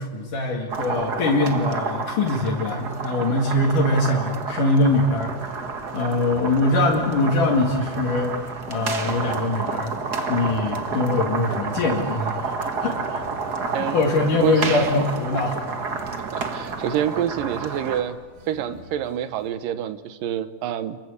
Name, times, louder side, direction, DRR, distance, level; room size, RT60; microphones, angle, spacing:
voice 1, 0.0-5.4 5.9-8.4 8.7-10.0 10.3-13.2 13.7-15.6, left 2 dB, 75° left, -1 dB, 3.7 m, -22 dB
sound 1, 0.7-18.0, right 4 dB, 40° right, 1.6 m, -30 dB
sound 2, 2.1-2.3 2.7-3.1 3.4-3.8 4.1-19.5, right 3 dB, 65° right, 6.7 m, -48 dB
voice 2, 16.3-18.2 18.5-21.0, right 10 dB, 85° right, 12 dB, 2.7 m, -27 dB
27.0 x 22.5 x 8.2 m, 1.4 s
omnidirectional pair, 3.8 m